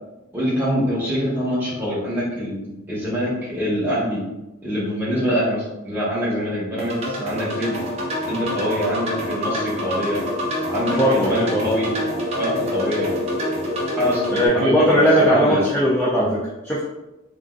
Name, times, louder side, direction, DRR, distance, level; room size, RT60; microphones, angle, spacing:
voice 1, 0.3-4.3 4.6-7.7 8.3-10.2 10.7-11.9 12.4-13.1 14.0-15.6, equal, 10° right, -9 dB, 1.1 m, -24 dB
sound 1, 6.8-14.5, left 1 dB, 30° right, 0.6 m, -26 dB
voice 2, 11.0-11.6 14.3-16.8, equal, 10° left, -7 dB, 0.4 m, -18 dB
3.4 x 2.5 x 2.4 m, 1.0 s
head